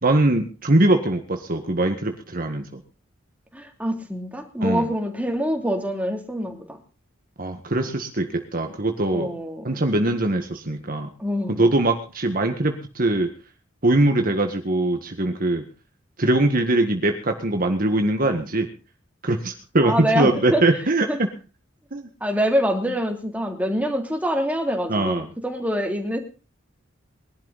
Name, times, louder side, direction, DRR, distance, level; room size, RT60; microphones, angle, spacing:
voice 1, 0.0-2.8 4.6-4.9 7.4-9.3 9.6-11.1 11.5-13.3 13.8-15.6 16.2-18.7 19.2-21.3 21.9-22.1 24.9-25.3, right 2 dB, 45° right, 5 dB, 1.6 m, -22 dB
voice 2, 3.5-6.8 9.1-9.9 11.2-11.7 19.8-20.6 21.1-21.2 22.2-26.2, equal, 5° right, 3 dB, 3.0 m, -25 dB
21.5 x 12.0 x 4.1 m, 0.36 s
head